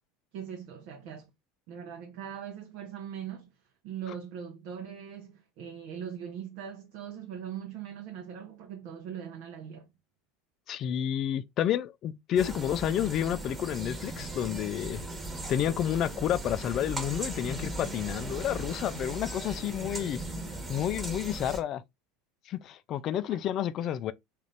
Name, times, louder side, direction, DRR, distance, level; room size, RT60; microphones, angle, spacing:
voice 1, 0.3-1.3 1.7-3.5 3.8-9.9 23.1-23.2, right 8 dB, 60° right, 0.7 m, -41 dB
voice 2, 10.7-15.0 15.5-20.2 20.7-21.8 22.5-24.1, left 10 dB, 45° left, 0.4 m, -30 dB
sound 1, 12.4-21.6, right 1 dB, 15° right, 1.2 m, -38 dB
3.8 x 2.5 x 3.2 m
figure-of-eight pair, 75°, 0 cm